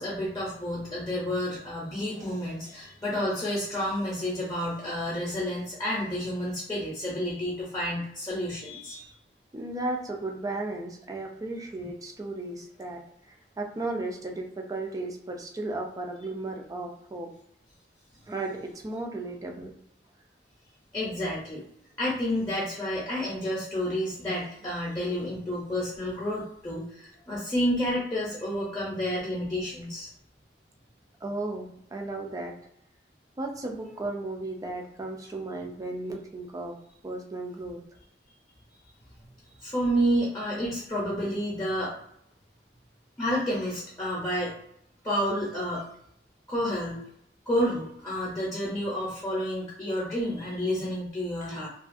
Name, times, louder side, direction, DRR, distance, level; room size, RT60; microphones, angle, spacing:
voice 1, 0.0-9.1 20.9-21.6 22.0-30.1 39.6-41.9 43.2-44.5 45.0-45.8 46.5-47.0 47.5-51.7, equal, 20° left, -6 dB, 0.7 m, -30 dB
voice 2, 9.5-13.0 13.3-17.3 18.3-19.7 31.2-32.5 33.4-36.7 37.0-37.8, right 2 dB, 20° right, 2 dB, 0.4 m, -35 dB
2.4 x 2.4 x 2.5 m, 0.71 s
head